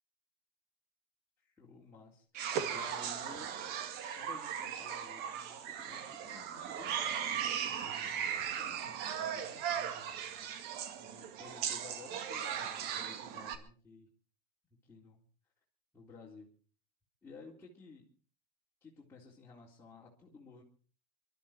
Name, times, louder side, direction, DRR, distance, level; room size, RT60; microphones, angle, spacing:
voice 1, 1.4-3.5 4.1-10.1 10.9-14.1 14.8-15.2 15.9-16.5 17.2-18.1 18.8-20.6, left 4 dB, 10° left, -6 dB, 4.0 m, -55 dB
sound 1, 2.3-13.6, right 8 dB, 55° right, 2.1 m, -38 dB
23.5 x 13.0 x 4.4 m, 0.38 s
supercardioid pair, 120°, 20 cm